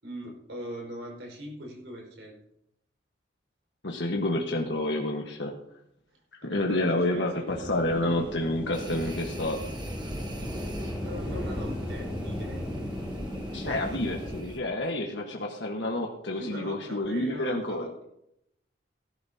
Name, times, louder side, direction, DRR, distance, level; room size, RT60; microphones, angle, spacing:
voice 1, 0.0-2.4 6.1-7.5 11.0-12.6 13.5-13.9 16.3-18.0, equal, 80° right, 0 dB, 5.0 m, -41 dB
voice 2, 3.8-5.5 6.4-9.7 13.5-17.9, left 1 dB, 75° left, 0 dB, 1.4 m, -29 dB
sound 1, 7.5-14.4, left 1 dB, 5° right, 3.2 m, -36 dB
sound 2, 8.7-14.6, right 1 dB, 25° right, 1.3 m, -42 dB
18.5 x 12.0 x 2.9 m, 0.78 s
head